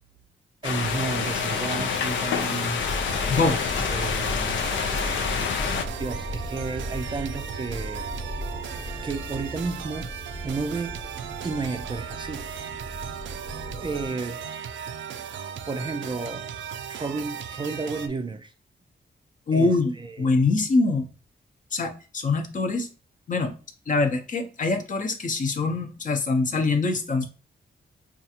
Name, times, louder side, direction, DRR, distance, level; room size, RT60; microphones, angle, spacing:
sound 1, 0.6-5.9, left 7 dB, 85° left, 0.5 m, -27 dB
voice 1, 0.6-2.8 3.4-3.6 3.9-4.7 6.0-8.1 9.0-10.1 10.4-11.0 11.4-12.5 13.1-13.2 13.7-14.4 15.6-16.5 16.9-18.5 19.5-20.3, right 4 dB, 25° right, 0.4 m, -32 dB
sound 2, 0.8-18.1, right 8 dB, 80° right, 0.4 m, -37 dB
sound 3, 2.8-14.1, left 1 dB, 15° left, 0.9 m, -36 dB
voice 2, 19.5-21.1 21.7-22.9 23.3-23.5 23.9-27.3, left 3 dB, 45° left, 0.7 m, -24 dB
5.3 x 2.4 x 2.8 m
cardioid pair, 115°, 19 cm